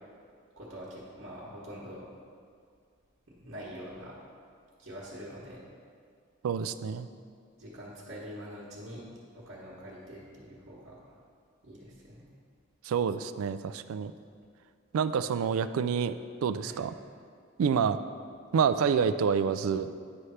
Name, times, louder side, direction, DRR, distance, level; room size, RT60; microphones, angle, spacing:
voice 1, 0.6-2.0 3.3-4.1 4.8-5.6 7.6-9.0 9.3-11.1 11.6-12.3 16.6-16.8, equal, 55° right, -7 dB, 1.2 m, -44 dB
voice 2, 6.4-7.1 12.8-14.1 14.9-16.1 16.4-17.0 17.6-18.0 18.5-19.9, right 6 dB, 80° right, 12 dB, 0.3 m, -27 dB
9.4 x 3.3 x 5.6 m, 2.2 s
head